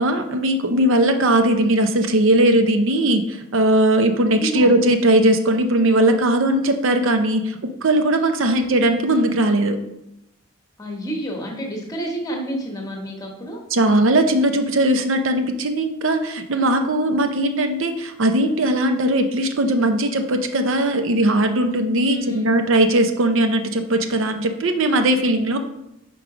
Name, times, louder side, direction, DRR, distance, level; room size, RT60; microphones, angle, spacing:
voice 1, 0.0-9.8 13.7-25.6, right 1 dB, 60° right, 6 dB, 0.6 m, -19 dB
voice 2, 4.4-4.8 8.4-8.7 10.8-13.6 22.1-22.5, right 1 dB, 15° left, 0 dB, 1.1 m, -29 dB
5.3 x 4.6 x 4.8 m, 0.85 s
head